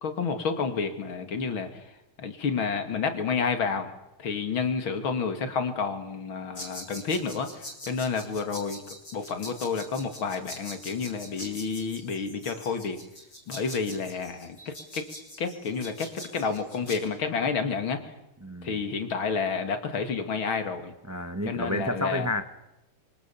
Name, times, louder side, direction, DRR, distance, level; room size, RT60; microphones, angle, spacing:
voice 1, 0.0-1.8 2.2-3.9 4.2-8.8 9.1-13.0 13.5-15.1 15.4-18.0 18.6-20.9 21.5-22.3, left 5 dB, 75° left, 7 dB, 3.0 m, -30 dB
sound 1, 6.5-17.0, left 1 dB, 40° left, 7.9 m, -43 dB
voice 2, 18.4-18.8 21.1-22.4, left 1 dB, 20° right, 9 dB, 0.5 m, -30 dB
26.0 x 24.5 x 7.2 m, 0.90 s
omnidirectional pair, 2.3 m